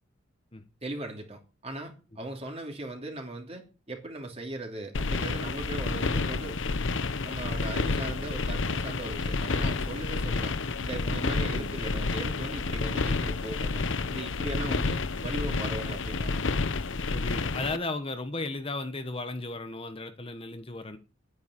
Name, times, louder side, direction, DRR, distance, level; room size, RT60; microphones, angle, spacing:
voice 1, 0.8-6.8 7.2-16.4, right 1 dB, 30° right, 3.0 m, -39 dB
sound 1, 4.9-17.8, left 3 dB, 70° left, 0.9 m, -30 dB
voice 2, 17.1-21.0, left 2 dB, 30° left, 1.3 m, -35 dB
10.5 x 9.7 x 8.7 m
head